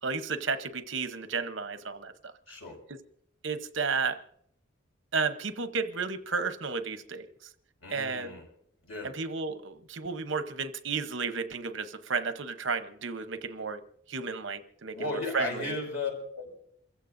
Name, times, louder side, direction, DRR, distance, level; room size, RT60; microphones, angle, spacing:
voice 1, 0.0-2.3 3.4-4.2 5.1-7.3 7.9-8.4 9.0-13.8 14.1-15.8, right 4 dB, 65° right, 0.9 m, -33 dB
voice 2, 2.5-2.8 7.8-8.4 8.8-9.1 14.9-16.5, left 2 dB, 90° left, 5.7 m, -35 dB
28.0 x 15.5 x 2.6 m
head